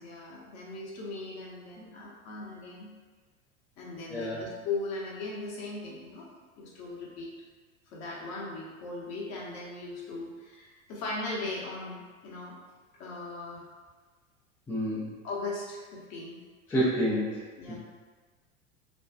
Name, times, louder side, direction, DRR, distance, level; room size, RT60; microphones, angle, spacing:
voice 1, 0.0-2.9 3.8-6.3 6.6-7.3 7.9-12.5 13.0-13.6 15.2-16.4 17.6-17.8, left 3 dB, 40° left, -4 dB, 0.8 m, -38 dB
voice 2, 4.1-4.4 14.7-15.1 16.7-17.8, equal, 5° left, -9 dB, 0.3 m, -29 dB
2.5 x 2.3 x 2.2 m, 1.4 s
hypercardioid pair, 90°, 41 cm